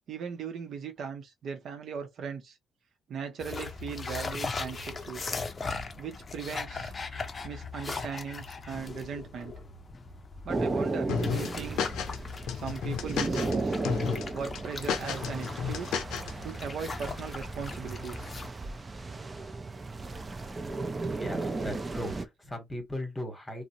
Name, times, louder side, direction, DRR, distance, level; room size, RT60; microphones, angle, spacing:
voice 1, 0.1-2.6 3.1-5.2 6.0-6.9 7.4-9.5 10.4-11.9 12.5-13.8 14.3-16.0 16.4-18.2, right 6 dB, 65° right, 0.7 m, -38 dB
sound 1, 3.4-18.5, left 4 dB, 35° left, 0.5 m, -39 dB
sound 2, 10.5-22.2, right 3 dB, 25° right, 0.4 m, -35 dB
sound 3, 11.1-12.2 12.5-13.5 13.8-14.2 14.5-16.3, left 7 dB, 85° left, 0.5 m, -31 dB
voice 2, 21.1-23.6, left 1 dB, 15° left, 1.3 m, -38 dB
2.5 x 2.0 x 2.8 m
cardioid pair, 90°, 0 cm